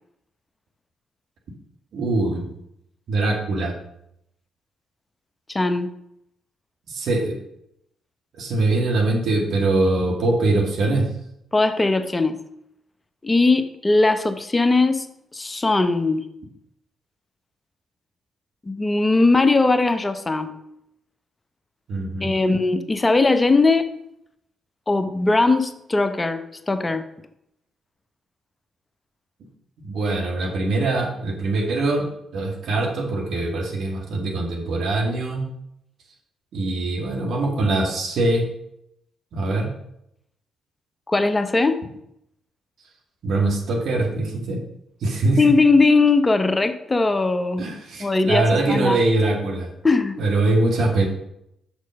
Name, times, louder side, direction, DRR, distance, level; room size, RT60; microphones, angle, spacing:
voice 1, 1.9-2.5 3.1-3.8 6.9-7.4 8.4-11.1 21.9-22.3 29.8-32.1 32.3-35.5 36.5-38.4 39.3-39.7 43.2-44.6 45.0-45.4 47.6-49.7 50.2-51.1, right 2 dB, 65° right, 0 dB, 2.0 m, -22 dB
voice 2, 5.5-5.9 11.5-12.4 13.2-15.1 15.3-16.3 18.7-20.6 22.2-23.9 24.9-27.0 41.1-41.8 45.4-47.7 48.0-49.0 49.8-50.2, left 3 dB, 25° left, 10 dB, 0.8 m, -19 dB
6.4 x 6.3 x 5.3 m, 0.77 s
hypercardioid pair, 40°, 0 cm